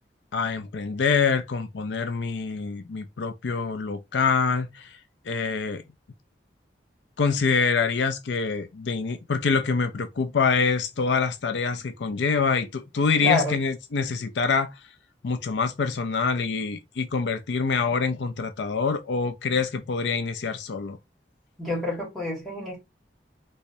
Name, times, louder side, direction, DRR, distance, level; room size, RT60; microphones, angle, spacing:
voice 1, 0.3-5.0 5.3-5.8 7.2-14.7 15.2-21.0, left 5 dB, 80° left, 0.5 m, -25 dB
voice 2, 13.2-13.6 21.6-22.8, left 2 dB, ahead, 1.9 m, -27 dB
3.4 x 3.1 x 2.7 m
head